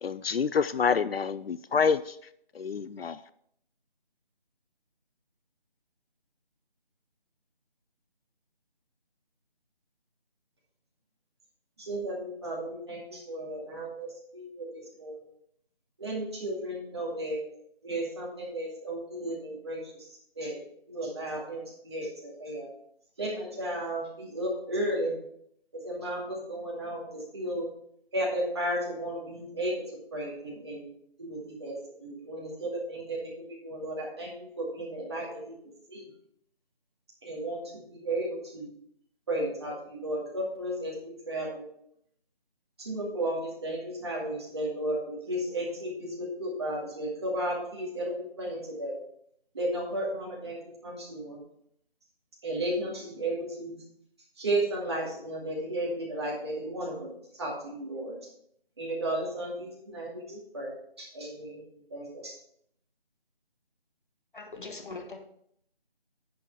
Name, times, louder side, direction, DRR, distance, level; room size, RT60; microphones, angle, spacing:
voice 1, 0.0-2.1 2.6-3.2, left 6 dB, 75° left, 15 dB, 0.5 m, -27 dB
voice 2, 11.8-15.3 16.0-17.4 17.8-20.1 20.4-20.6 20.9-22.7 23.2-25.1 25.7-27.7 28.1-29.7 30.1-30.9 31.2-35.5 35.9-36.1 37.2-38.7 39.3-41.6 42.8-49.0 49.5-51.4 52.4-53.8 54.4-58.2 58.8-60.7 61.0-61.6 61.9-62.4, right 1 dB, 25° right, -4 dB, 2.3 m, -34 dB
voice 3, 64.3-65.2, left 3 dB, 55° left, 4 dB, 1.6 m, -41 dB
10.0 x 6.3 x 4.5 m, 0.70 s
figure-of-eight pair, 170°, 30 cm